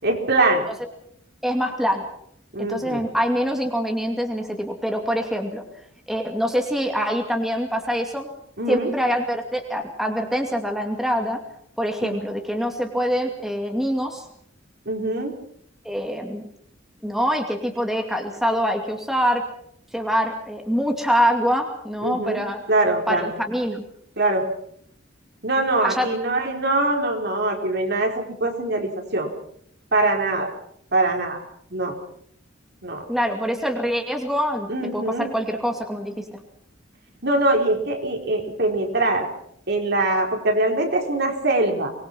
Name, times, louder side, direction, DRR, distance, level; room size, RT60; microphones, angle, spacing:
voice 1, 0.0-0.7 2.5-3.0 8.6-8.9 12.0-12.2 14.9-15.4 22.0-22.4 22.7-23.3 24.2-24.5 25.4-29.3 29.9-30.5 30.9-31.4 31.7-31.9 32.8-33.0 34.7-35.3 37.2-39.3 39.7-41.9, right 2 dB, 60° right, 2 dB, 4.4 m, -23 dB
voice 2, 1.4-2.1 2.6-5.6 6.1-8.3 8.7-11.4 11.8-14.2 15.8-16.4 17.0-19.4 19.9-22.6 23.1-23.8 25.8-26.1 33.1-36.4, equal, ahead, 3 dB, 2.5 m, -24 dB
24.5 x 21.0 x 6.0 m, 0.67 s
head